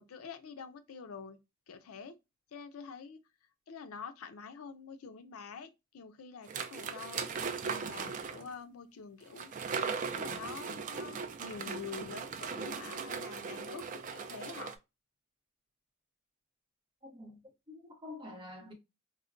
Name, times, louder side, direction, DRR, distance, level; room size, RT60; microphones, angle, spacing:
voice 1, 0.0-1.4 1.7-2.2 2.5-3.2 3.7-7.3 7.6-9.5 10.1-14.8, left 5 dB, 80° left, 0.5 m, -46 dB
sound 1, 6.5-8.5 9.4-14.7, right 5 dB, 40° right, 0.4 m, -38 dB
voice 2, 17.0-17.4 17.7-18.7, left 2 dB, 25° right, 0.7 m, -47 dB
4.0 x 2.1 x 2.4 m
head